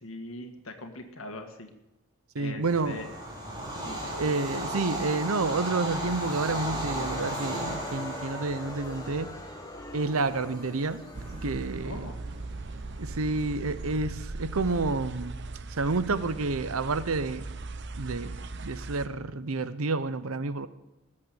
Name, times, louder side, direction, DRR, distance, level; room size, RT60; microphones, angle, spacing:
voice 1, 0.0-1.7 2.4-3.1 3.8-4.1 11.8-12.2, left 2 dB, 75° left, 4 dB, 1.8 m, -41 dB
voice 2, 2.3-3.1 4.2-9.3 9.9-11.0 11.4-12.1 13.0-15.4 15.7-17.4 18.0-20.7, right 3 dB, 90° right, 14 dB, 0.8 m, -29 dB
Bird vocalization bird call bird song / Train, 2.6-13.8, right 1 dB, 20° right, 3.5 m, -36 dB
Crowd, 6.8-11.8, left 1 dB, 20° left, 1.1 m, -42 dB
sound 1, 11.1-19.1, right 3 dB, 55° right, 0.8 m, -39 dB
20.0 x 7.7 x 7.7 m, 0.96 s
head